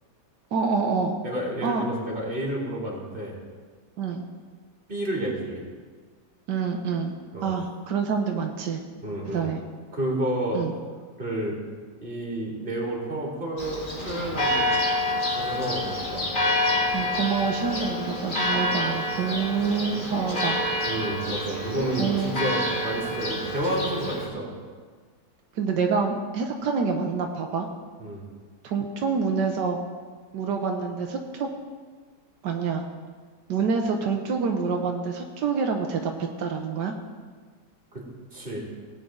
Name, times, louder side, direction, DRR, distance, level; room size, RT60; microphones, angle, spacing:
voice 1, 0.5-1.2 1.6-1.9 4.0-4.2 6.5-7.1 7.4-8.8 9.3-9.6 10.5-10.7 16.9-20.5 22.0-22.4 25.5-27.7 28.6-29.8 30.3-31.5 32.4-32.8 33.5-36.9, right 5 dB, 85° right, 3 dB, 1.5 m, -27 dB
voice 2, 1.2-3.4 4.9-5.6 7.3-7.5 9.0-9.5 9.9-10.6 11.2-11.6 12.0-14.7 15.3-16.3 20.8-24.5 28.0-28.2 37.9-38.0 38.3-38.6, right 1 dB, 30° right, -3 dB, 2.9 m, -30 dB
Church bell, 13.6-24.3, left 1 dB, 30° left, 1.7 m, -28 dB
18.0 x 8.3 x 3.8 m, 1.5 s
omnidirectional pair, 1.8 m